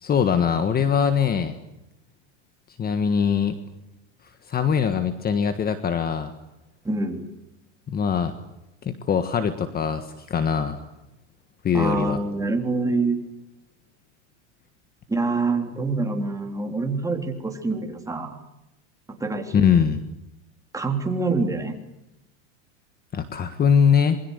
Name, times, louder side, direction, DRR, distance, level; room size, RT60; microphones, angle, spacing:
voice 1, 0.0-1.5 2.8-3.5 4.5-6.3 7.9-8.3 8.8-10.8 11.6-12.2 19.5-20.0 23.1-24.2, left 7 dB, 25° left, 10 dB, 1.6 m, -22 dB
voice 2, 6.8-7.2 11.7-13.2 15.1-18.4 19.1-19.7 20.7-21.8, right 3 dB, 10° right, 3 dB, 3.6 m, -26 dB
27.0 x 22.0 x 8.2 m, 0.91 s
supercardioid pair, 135°, 37 cm